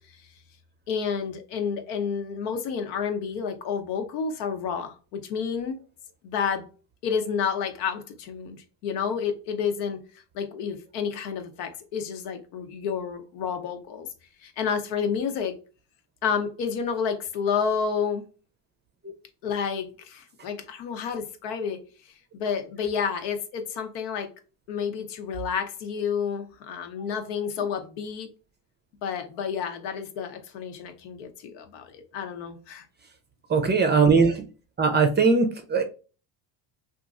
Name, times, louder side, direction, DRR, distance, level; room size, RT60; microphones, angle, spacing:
voice 1, 0.9-5.8 6.2-6.7 7.0-14.1 14.4-15.5 16.2-18.3 19.4-21.8 22.0-24.3 24.7-28.3 29.0-32.8, left 6 dB, 85° left, 0.8 m, -30 dB
voice 2, 33.5-34.4 34.8-35.8, right 4 dB, 20° right, 0.4 m, -20 dB
2.9 x 2.5 x 2.4 m
supercardioid pair, 105°, 49 cm